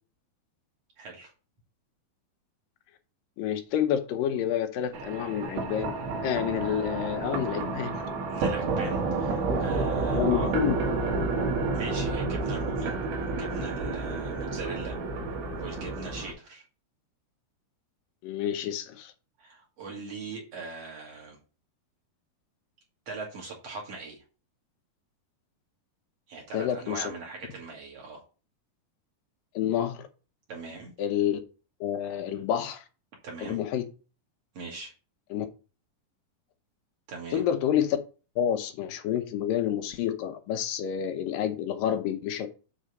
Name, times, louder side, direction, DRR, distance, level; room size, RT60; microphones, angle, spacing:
voice 1, 1.0-1.3 8.3-10.5 11.7-12.9 13.3-15.0 15.5-16.6 19.4-21.4 23.1-24.2 26.3-28.2 30.5-30.9 33.2-33.6 34.5-34.9 37.1-37.4, right 3 dB, 45° right, -1 dB, 3.1 m, -40 dB
voice 2, 3.4-5.9 6.2-8.0 10.1-10.8 18.2-19.1 26.5-27.0 29.6-30.1 31.0-31.4 31.8-32.8 33.4-33.9 35.3-35.5 37.3-38.0 38.4-42.5, left 10 dB, 75° left, 7 dB, 2.4 m, -28 dB
sound 1, 4.9-16.3, right 3 dB, 85° right, 3.5 m, -30 dB
7.6 x 3.9 x 6.5 m, 0.35 s
omnidirectional pair, 4.3 m